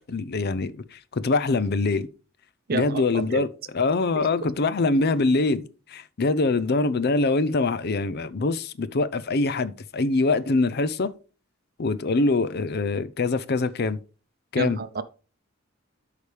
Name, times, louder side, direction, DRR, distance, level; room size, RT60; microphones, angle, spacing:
voice 1, 0.1-2.1 2.7-3.5 3.7-11.1 11.8-14.0 14.5-14.8, left 3 dB, 55° left, 0.6 m, -24 dB
voice 2, 2.7-3.5 14.6-15.0, right 3 dB, 50° right, 0.6 m, -29 dB
12.5 x 5.0 x 3.4 m
head